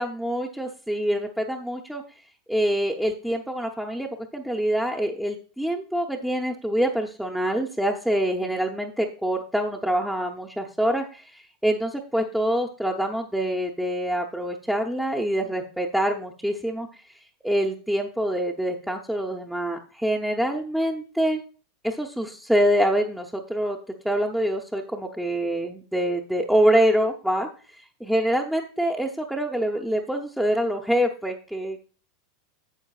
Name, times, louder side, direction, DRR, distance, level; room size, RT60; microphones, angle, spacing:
voice 1, 0.0-2.0 2.5-16.9 17.4-21.4 21.8-23.8 24.0-27.5 28.1-31.8, equal, 5° right, 1 dB, 0.8 m, -25 dB
12.0 x 8.1 x 2.4 m, 0.38 s
figure-of-eight pair, 85°, 0 cm